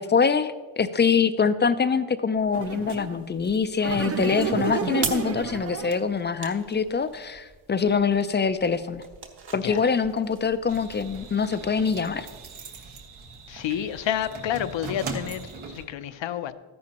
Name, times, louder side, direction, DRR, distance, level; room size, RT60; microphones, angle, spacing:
voice 1, 0.0-9.0 9.5-12.3, left 5 dB, 25° left, 0.4 m, -24 dB
sound 1, 2.3-11.2, right 5 dB, 55° right, 1.5 m, -41 dB
sound 2, 2.5-3.2 3.8-6.1, right 6 dB, 30° right, 0.5 m, -30 dB
sound 3, 10.7-15.8, right 3 dB, 85° right, 1.7 m, -40 dB
voice 2, 13.5-16.5, left 10 dB, 65° left, 0.7 m, -30 dB
13.5 x 10.5 x 2.9 m
cardioid pair, 105°, 48 cm